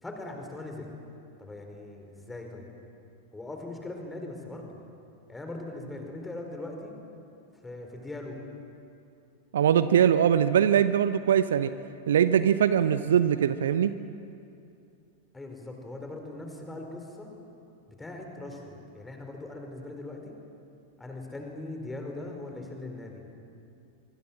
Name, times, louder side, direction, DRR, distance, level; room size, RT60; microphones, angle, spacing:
voice 1, 0.0-0.9 1.4-2.7 3.3-4.8 5.3-6.9 7.6-8.4 15.3-17.3 17.9-20.3 21.0-23.2, left 2 dB, 10° left, 3 dB, 4.6 m, -40 dB
voice 2, 9.5-11.7 12.1-13.9, right 9 dB, 60° right, 13 dB, 0.8 m, -22 dB
25.0 x 25.0 x 7.5 m, 2.6 s
figure-of-eight pair, 90°, 0 cm